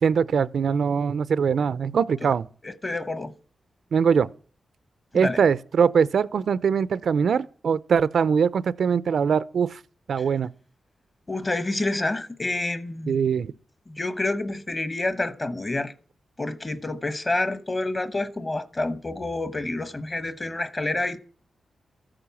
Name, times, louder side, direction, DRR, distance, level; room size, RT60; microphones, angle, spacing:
voice 1, 0.0-2.5 3.9-4.3 5.1-9.8 10.1-10.5 13.1-13.5, right 6 dB, 70° right, 0.5 m, -22 dB
voice 2, 2.6-3.3 5.1-5.4 11.3-13.2 13.9-15.9 16.4-21.2, left 2 dB, 25° left, 1.1 m, -28 dB
14.0 x 8.9 x 7.0 m
wide cardioid pair, 130°, 0 cm